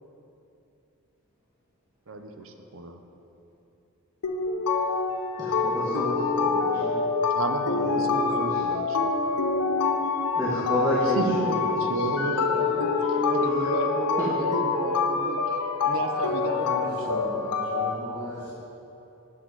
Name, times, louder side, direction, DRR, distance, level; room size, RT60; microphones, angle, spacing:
voice 1, 2.1-3.0 7.3-9.1 11.2-15.6 15.9-17.9, right 2 dB, 60° right, 6 dB, 0.6 m, -33 dB
sound 1, 4.2-18.0, left 4 dB, 85° left, 0.5 m, -26 dB
voice 2, 5.4-6.9 7.7-8.6 10.4-12.3 12.6-12.7 13.6-13.8 14.2-14.3, equal, 15° right, -10 dB, 1.2 m, -30 dB
voice 3, 16.1-18.5, equal, 45° right, -9 dB, 1.4 m, -37 dB
7.6 x 6.1 x 4.7 m, 2.9 s
head